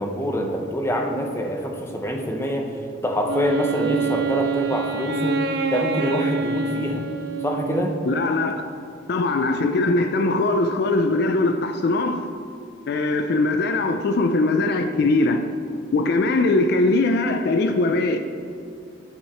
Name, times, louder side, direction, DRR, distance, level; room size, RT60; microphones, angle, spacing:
voice 1, 0.0-2.7 3.0-5.4 5.7-7.0 7.4-7.9, equal, 15° left, 0.7 m, -25 dB
Wind instrument woodwind instrument, 3.2-8.1, right 5 dB, 55° right, 0.4 m, -26 dB
voice 2, 8.0-8.6 9.1-12.2 12.9-15.5 15.9-18.2, left 2 dB, 55° left, 0.4 m, -21 dB
10.5 x 4.7 x 4.3 m
head